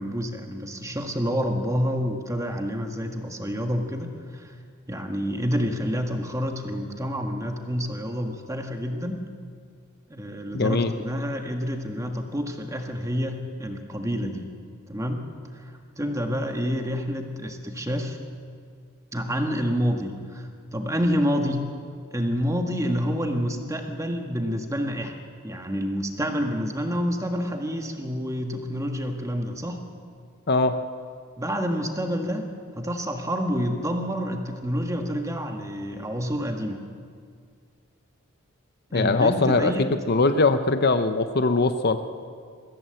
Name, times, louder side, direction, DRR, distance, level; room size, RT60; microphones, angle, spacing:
voice 1, 0.0-4.5 4.9-9.3 10.1-14.4 14.9-15.2 15.5-18.2 19.1-21.7 22.1-25.1 25.4-29.8 31.4-32.5 32.7-36.8 38.9-39.9, equal, 15° right, 4 dB, 1.6 m, -28 dB
voice 2, 10.5-10.9 30.5-30.8 38.9-39.7 40.1-42.0, left 3 dB, 45° left, 9 dB, 0.7 m, -21 dB
22.0 x 15.5 x 7.8 m, 2.2 s
head